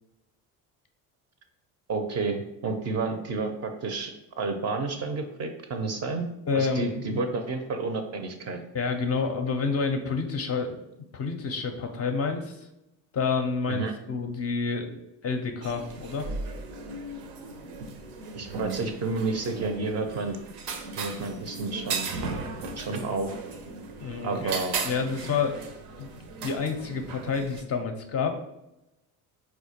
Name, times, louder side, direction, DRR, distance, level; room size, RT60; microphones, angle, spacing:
voice 1, 1.9-6.3 6.5-8.6 13.7-13.9 18.3-20.4 21.0-22.1 22.8-23.3 24.2-24.8, right 3 dB, 35° right, 5 dB, 0.4 m, -30 dB
voice 2, 6.5-7.2 8.7-10.8 11.1-12.7 13.1-16.3 24.0-24.6 24.8-25.6 26.0-26.1 26.4-28.4, left 5 dB, 35° left, 5 dB, 0.4 m, -29 dB
sound 1, 15.6-27.6, right 4 dB, 80° right, 0.6 m, -36 dB
4.3 x 2.1 x 2.8 m, 0.90 s
hypercardioid pair, 70°, 46 cm